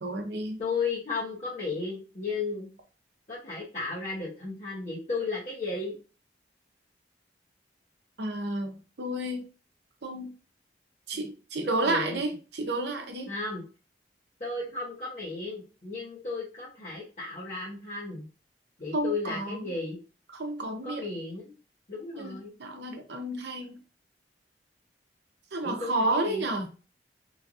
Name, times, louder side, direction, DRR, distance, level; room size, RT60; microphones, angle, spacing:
voice 1, 0.0-0.6 8.2-9.5 10.0-10.3 11.1-13.3 18.9-19.7 20.4-21.1 22.2-23.8 25.5-26.7, right 2 dB, 75° right, 4 dB, 0.7 m, -31 dB
voice 2, 0.6-2.7 3.3-5.9 11.6-12.2 13.3-13.6 14.4-18.3 18.8-20.0 20.7-21.5 21.9-22.5 25.6-26.5, left 3 dB, 40° left, -7 dB, 0.8 m, -34 dB
3.1 x 2.6 x 2.4 m, 0.34 s
head